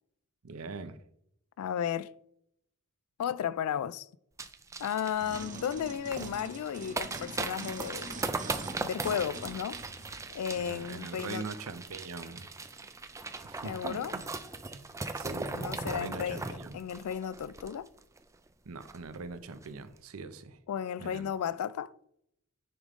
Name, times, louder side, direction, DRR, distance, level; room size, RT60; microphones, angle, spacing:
voice 1, 0.4-1.0 10.7-12.5 13.4-14.2 14.7-14.9 15.1-16.7 18.7-20.6 21.0-21.3, right 3 dB, 70° right, 0.6 m, -42 dB
voice 2, 1.6-2.1 3.2-4.1 4.8-8.2 8.8-9.8 10.3-11.5 13.6-14.2 15.5-17.9 20.7-21.9, left 8 dB, 85° left, 0.3 m, -34 dB
sound 1, 4.4-18.2 18.5-18.6 18.8-19.1 19.5-19.7, right 3 dB, 15° right, 0.4 m, -39 dB
sound 2, 5.2-10.7 11.3-11.4, right 2 dB, 35° right, 0.7 m, -44 dB
9.9 x 3.6 x 3.6 m
head